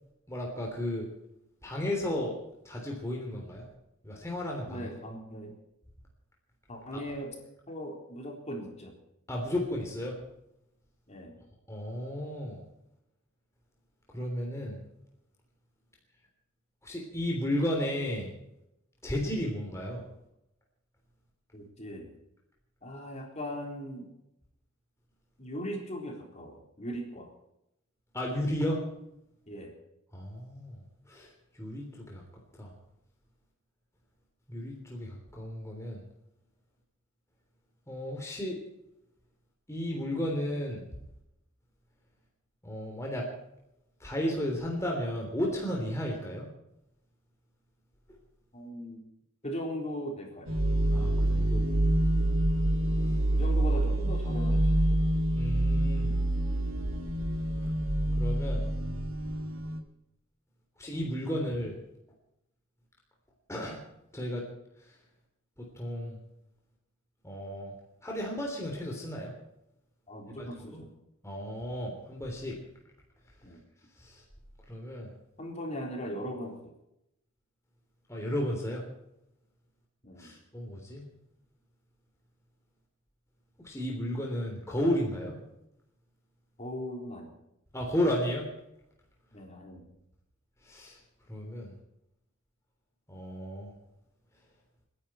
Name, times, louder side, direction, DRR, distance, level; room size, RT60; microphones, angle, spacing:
voice 1, 0.3-1.1 1.6-2.3 2.6-3.6 4.0-4.9 6.9-7.0 9.3-10.1 11.7-12.6 14.1-14.8 16.8-18.3 19.0-20.0 28.1-28.8 30.1-30.8 31.1-31.3 31.6-32.2 32.6-32.7 34.5-36.0 37.9-38.6 39.7-40.8 42.6-43.2 44.0-46.5 50.9-51.6 55.3-56.2 58.2-58.6 60.8-61.8 63.5-63.8 64.1-64.4 65.8-66.2 67.2-67.7 68.0-69.3 70.4-70.5 70.7-70.8 71.2-72.6 74.0-74.2 74.7-75.1 78.1-78.8 80.2-81.1 83.6-85.3 87.7-88.5 90.6-91.0 91.3-91.7 93.1-93.7, left 1 dB, 15° left, -1 dB, 3.4 m, -33 dB
voice 2, 4.7-5.5 6.7-7.4 7.7-8.9 11.1-11.4 21.5-22.1 22.8-24.1 25.4-27.3 29.5-29.8 48.5-49.0 49.4-50.6 53.3-55.0 70.1-70.9 73.4-73.6 75.4-76.7 80.0-80.4 86.6-87.4 89.3-89.9, equal, 30° left, 1 dB, 4.0 m, -39 dB
sound 1, 50.5-59.8, right 1 dB, 75° right, 2.5 m, -27 dB
29.5 x 11.0 x 4.4 m, 0.84 s
head